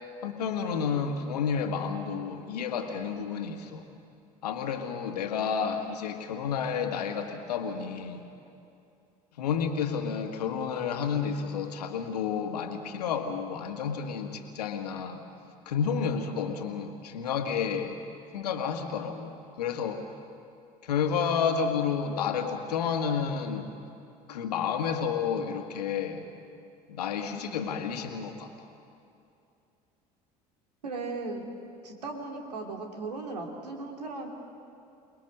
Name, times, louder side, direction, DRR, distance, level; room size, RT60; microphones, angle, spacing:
voice 1, 0.2-3.8 4.4-8.2 9.4-15.2 15.7-18.0 18.3-20.0 20.8-23.7 24.3-26.3 26.9-28.7, left 6 dB, 85° left, 5 dB, 1.7 m, -30 dB
voice 2, 30.8-31.4 31.8-34.3, right 3 dB, 90° right, 2 dB, 2.6 m, -37 dB
28.5 x 19.5 x 6.6 m, 2.6 s
hypercardioid pair, 60°, 20 cm